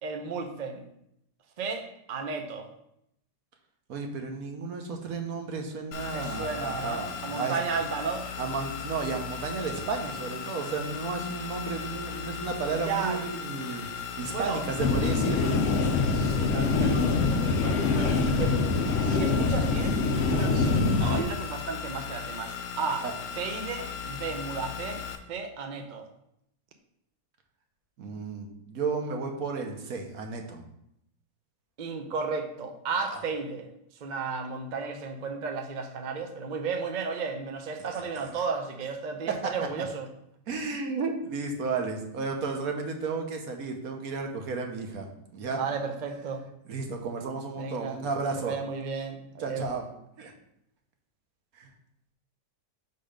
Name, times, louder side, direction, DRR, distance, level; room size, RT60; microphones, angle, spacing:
voice 1, 0.0-0.8 1.6-2.7 6.1-8.3 12.7-13.3 14.3-14.6 16.0-18.6 19.0-20.0 20.3-23.1 23.4-26.1 31.8-33.7 34.0-40.1 45.5-46.4 47.6-48.0 48.3-49.7, right 5 dB, 75° right, 4 dB, 0.4 m, -34 dB
voice 2, 3.9-7.5 8.4-15.4 23.0-23.1 28.0-30.6 33.1-33.2 39.4-39.5 40.5-45.6 46.7-48.6 49.4-49.9 50.2-50.3 51.5-51.7, right 4 dB, 60° right, 3 dB, 1.3 m, -33 dB
sound 1, 5.9-25.2, left 7 dB, 60° left, 0.9 m, -37 dB
sound 2, 14.8-21.2, left 4 dB, 80° left, 0.6 m, -25 dB
5.7 x 4.1 x 5.0 m, 0.77 s
omnidirectional pair, 1.9 m